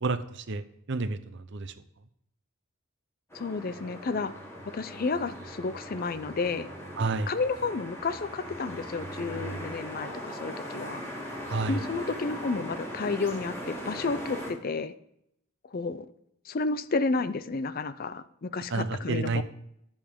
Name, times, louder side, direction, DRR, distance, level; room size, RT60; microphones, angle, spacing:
voice 1, 0.0-1.7 7.0-7.3 11.5-11.8 18.7-19.4, right 3 dB, 60° right, 12 dB, 0.7 m, -30 dB
voice 2, 3.3-4.3 4.7-6.7 7.3-11.0 11.7-14.9 15.7-16.1 16.5-19.4, left 4 dB, 45° left, 14 dB, 0.5 m, -31 dB
sound 1, 3.3-14.5, equal, 10° left, 3.1 m, -39 dB
15.0 x 7.2 x 3.6 m, 0.76 s
head